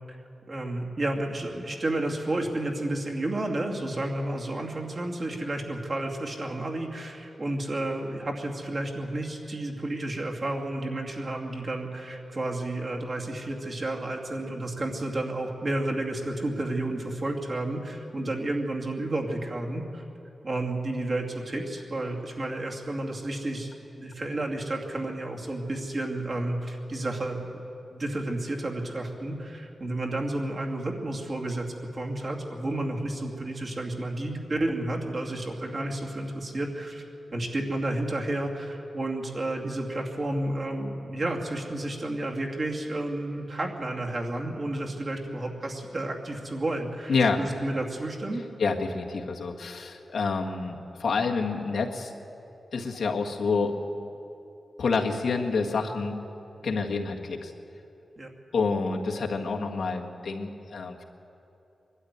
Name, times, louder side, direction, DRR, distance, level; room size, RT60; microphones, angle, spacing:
voice 1, 0.5-20.0 20.4-27.6 27.9-37.0 37.3-48.4 58.2-58.3, right 1 dB, 40° right, 0 dB, 2.5 m, -31 dB
voice 2, 48.6-52.1 52.7-53.7 54.8-56.2 56.6-57.5 58.5-61.0, left 4 dB, 80° left, 1 dB, 1.7 m, -28 dB
22.0 x 12.5 x 9.5 m, 2.9 s
wide cardioid pair, 115°, 0 cm